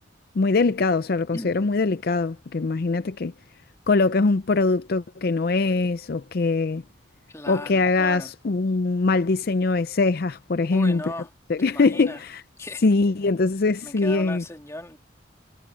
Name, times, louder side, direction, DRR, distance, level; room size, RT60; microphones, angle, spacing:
voice 1, 0.3-3.3 3.9-6.8 7.5-11.0 11.5-12.4 12.8-14.4, left 3 dB, 55° left, 0.5 m, -22 dB
voice 2, 1.3-1.7 7.3-8.3 10.7-11.3 11.6-12.2 12.6-12.8 13.8-15.0, left 1 dB, 15° left, 2.3 m, -37 dB
head